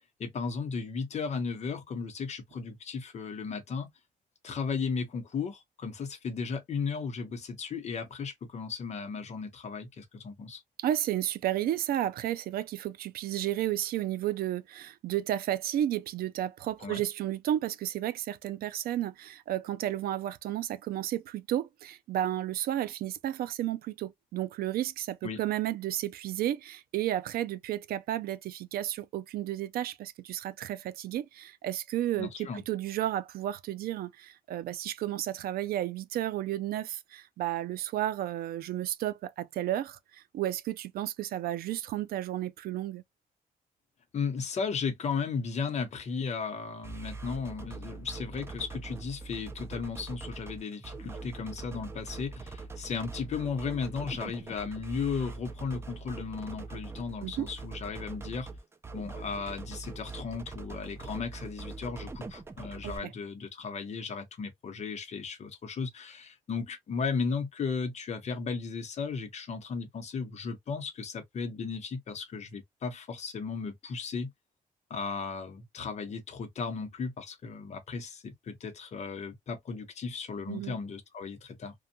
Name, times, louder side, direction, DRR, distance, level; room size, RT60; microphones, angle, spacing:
voice 1, 0.2-3.9 4.4-10.6 16.8-17.0 25.2-25.4 32.2-32.6 44.1-58.5 58.9-74.3 74.9-81.7, left 5 dB, 45° left, 0.8 m, -35 dB
voice 2, 10.8-43.0 57.2-57.5 62.8-63.1 80.5-80.8, right 12 dB, 75° right, 0.4 m, -32 dB
sound 1, 46.8-63.0, right 3 dB, 15° right, 0.4 m, -42 dB
2.6 x 2.2 x 2.6 m
cardioid pair, 130°, 16 cm